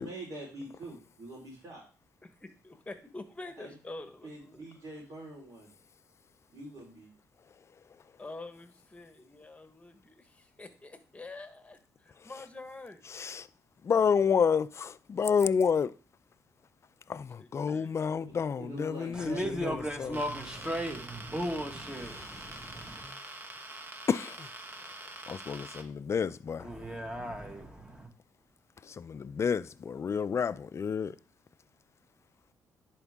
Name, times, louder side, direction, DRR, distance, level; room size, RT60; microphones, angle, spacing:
voice 1, 0.0-1.8 3.6-3.7 4.2-5.7 6.5-7.1 18.2-19.5, right 1 dB, 50° right, 3.9 m, -44 dB
voice 2, 2.2-4.7 8.2-13.1 17.1-17.9, left 2 dB, 20° left, 1.3 m, -47 dB
voice 3, 13.1-13.5 13.8-15.9 17.1-20.2 22.1-22.3 24.1-24.5 25.3-26.7 28.9-31.1, left 6 dB, 40° left, 0.4 m, -29 dB
voice 4, 19.1-23.2 26.6-28.1, equal, 10° right, 1.7 m, -36 dB
sound 1, 20.1-25.8, right 2 dB, 30° right, 1.0 m, -45 dB
10.5 x 4.6 x 3.5 m
cardioid pair, 70°, 7 cm